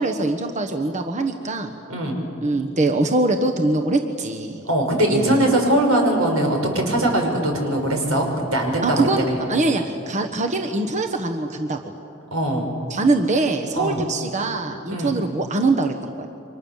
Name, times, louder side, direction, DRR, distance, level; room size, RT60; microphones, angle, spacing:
voice 1, 0.0-1.7 2.4-4.6 5.1-5.4 8.8-11.8 12.9-16.3, right 2 dB, 35° right, 4 dB, 1.2 m, -23 dB
voice 2, 1.9-2.2 4.6-9.4 12.3-12.7 13.7-14.0 14.9-15.1, right 1 dB, 85° right, 2 dB, 5.6 m, -21 dB
29.0 x 25.0 x 7.3 m, 2.7 s
head